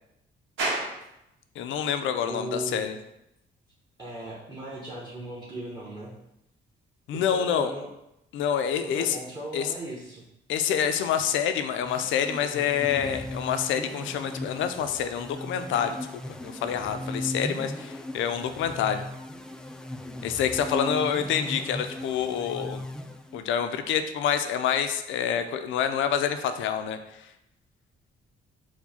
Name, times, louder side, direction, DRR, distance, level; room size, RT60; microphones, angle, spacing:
sound 1, 0.6-18.0, right 2 dB, 75° right, 1.0 m, -44 dB
voice 1, 1.6-3.0 7.1-7.7 8.3-9.2 9.5-9.7 10.5-16.0 16.4-19.0 20.2-22.9 23.3-27.3, left 8 dB, 75° left, 8 dB, 0.4 m, -27 dB
voice 2, 2.2-2.9 4.0-6.1 7.1-7.9 8.9-10.2 20.7-21.1, right 1 dB, 20° right, -5 dB, 1.0 m, -38 dB
sound 2, 11.8-23.6, left 1 dB, 5° left, 0.3 m, -37 dB
4.5 x 2.1 x 4.1 m, 0.85 s
cardioid pair, 90°, 20 cm